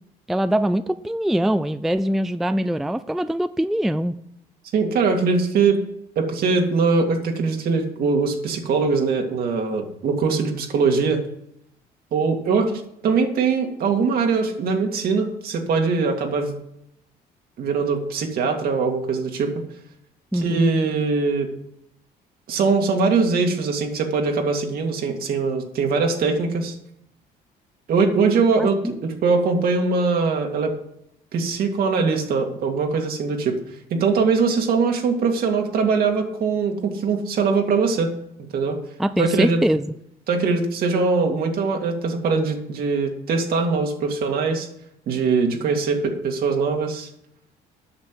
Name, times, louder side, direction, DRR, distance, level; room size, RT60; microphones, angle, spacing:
voice 1, 0.3-4.1 20.3-20.7 28.6-28.9 39.0-39.9, right 1 dB, ahead, 12 dB, 0.3 m, -23 dB
voice 2, 4.7-5.8 6.2-11.2 12.1-16.5 17.6-19.5 20.3-21.5 22.5-26.8 27.9-30.7 31.3-33.5 33.9-38.1 38.5-38.8 39.2-39.6 40.3-44.7 45.1-47.1, right 4 dB, 60° right, 3 dB, 2.2 m, -22 dB
8.9 x 6.5 x 7.6 m, 0.78 s
cardioid pair, 110°, 17 cm